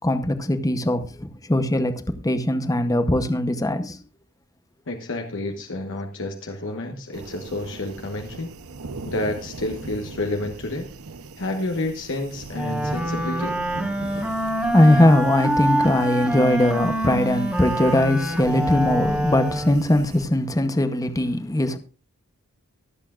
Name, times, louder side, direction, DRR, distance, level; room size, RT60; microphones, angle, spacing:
voice 1, 0.0-4.0 14.1-14.3 14.7-21.8, left 1 dB, 15° left, 0.8 m, -20 dB
voice 2, 4.9-8.5 9.0-10.9 11.4-13.6, left 2 dB, 60° left, 1.2 m, -30 dB
sound 1, 7.1-20.3, right 3 dB, 75° right, 0.8 m, -39 dB
Wind instrument woodwind instrument, 12.5-19.9, right 1 dB, 5° right, 1.7 m, -26 dB
23.5 x 8.3 x 2.5 m
head